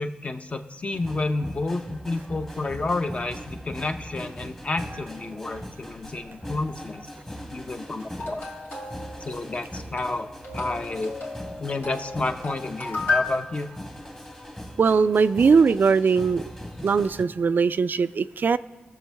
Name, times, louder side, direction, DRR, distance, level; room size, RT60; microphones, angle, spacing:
voice 1, 0.0-7.1 7.5-8.4 9.2-11.1 11.6-13.7, left 2 dB, 35° left, 7 dB, 0.7 m, -30 dB
sound 1, 0.9-17.2, equal, 15° left, 1.3 m, -40 dB
sound 2, 8.2-13.3, left 4 dB, 90° left, 2.4 m, -33 dB
voice 2, 14.8-16.4 16.8-18.6, right 5 dB, 60° right, 14 dB, 0.3 m, -20 dB
20.5 x 7.1 x 3.4 m, 1.4 s
wide cardioid pair, 100°, 4 cm